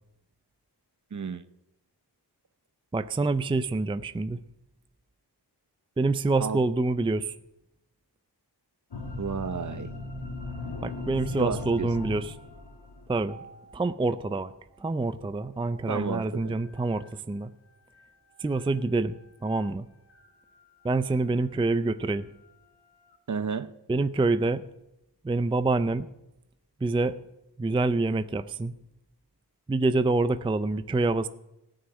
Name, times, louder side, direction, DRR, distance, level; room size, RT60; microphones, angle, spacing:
voice 1, 1.1-1.4 6.4-6.6 9.2-9.9 11.4-11.9 15.9-16.6 23.3-23.7, right 6 dB, 45° right, 0.7 m, -31 dB
voice 2, 2.9-4.4 6.0-7.4 10.8-12.4 13.1-13.4 13.7-14.5 14.8-17.5 18.4-19.2 19.4-19.9 20.8-22.3 23.9-24.6 25.2-26.1 26.8-27.2 27.6-28.7 29.7-31.3, right 3 dB, 15° right, 0.4 m, -26 dB
sound 1, 8.9-14.3 15.5-16.6 17.0-17.1 19.5-19.6 20.1-23.1, left 2 dB, 80° left, 2.4 m, -40 dB
14.5 x 6.2 x 9.6 m
wide cardioid pair, 85°, 41 cm